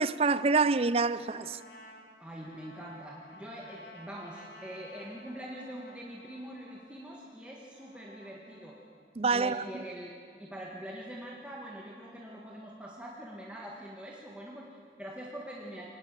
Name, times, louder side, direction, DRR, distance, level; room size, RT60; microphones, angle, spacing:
voice 1, 0.0-1.6 9.2-9.8, right 4 dB, 35° right, 0.5 m, -27 dB
Trumpet, 1.0-9.0, left 1 dB, 65° left, 3.0 m, -54 dB
voice 2, 2.2-8.8 9.3-10.1 10.4-15.9, equal, 5° right, 1.7 m, -44 dB
24.0 x 19.0 x 7.6 m
head